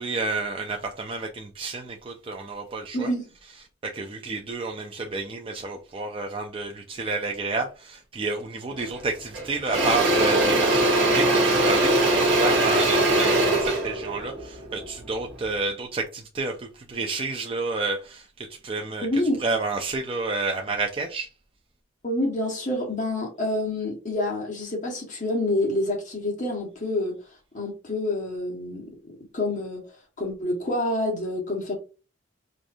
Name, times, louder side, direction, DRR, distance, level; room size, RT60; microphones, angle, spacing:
voice 1, 0.0-3.1 3.8-18.3 18.6-19.1 19.4-21.3, right 3 dB, 30° right, 0.4 m, -30 dB
Engine / Drill, 8.8-9.0 9.3-15.5, right 1 dB, 70° right, 1.3 m, -21 dB
voice 2, 19.0-19.4 22.0-27.2 27.5-28.9 29.3-29.8 30.2-31.7, left 1 dB, 40° left, 1.3 m, -27 dB
4.7 x 2.6 x 2.6 m
head